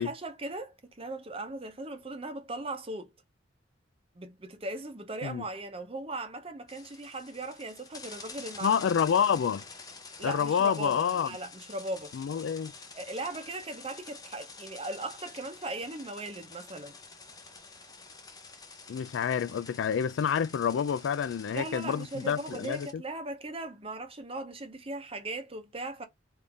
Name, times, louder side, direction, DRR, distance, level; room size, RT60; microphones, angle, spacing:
voice 1, 0.0-3.1 4.1-8.8 10.2-12.1 12.9-16.9 21.5-26.1, right 2 dB, 30° right, 0.8 m, -38 dB
sound 1, 6.7-22.9, left 4 dB, 20° left, 0.7 m, -48 dB
voice 2, 8.6-9.6 10.2-11.3 12.1-12.7 18.9-23.0, left 7 dB, 85° left, 0.3 m, -28 dB
3.5 x 2.7 x 3.5 m
head